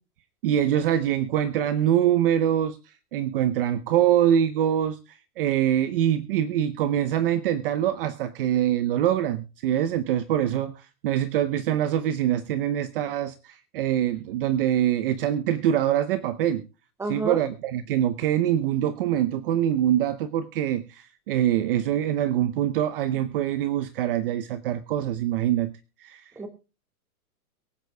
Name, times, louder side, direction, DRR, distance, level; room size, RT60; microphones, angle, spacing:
voice 1, 0.4-2.8 3.1-16.7 17.1-25.7 26.0-26.3, right 11 dB, 40° right, 14 dB, 0.8 m, -24 dB
voice 2, 17.0-17.4 26.3-26.5, right 2 dB, 5° right, 8 dB, 1.6 m, -29 dB
23.0 x 9.1 x 2.2 m, 0.30 s
hypercardioid pair, 150°, 45 cm